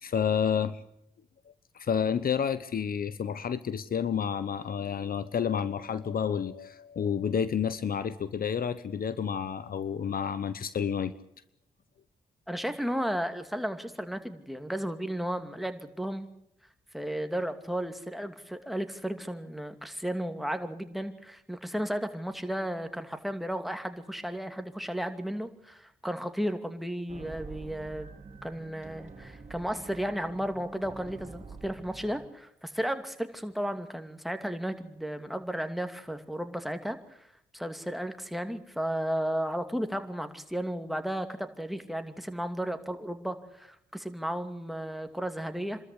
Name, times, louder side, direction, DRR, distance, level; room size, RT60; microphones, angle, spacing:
voice 1, 0.0-0.8 1.7-11.1, left 7 dB, 60° left, 15 dB, 1.0 m, -30 dB
voice 2, 12.5-16.3 16.9-28.1 28.4-37.3 37.5-45.8, equal, ahead, 7 dB, 2.5 m, -34 dB
sound 1, 27.1-32.3, right 4 dB, 40° right, 3.1 m, -46 dB
27.0 x 13.5 x 8.4 m, 0.76 s
supercardioid pair, 55°, 17 cm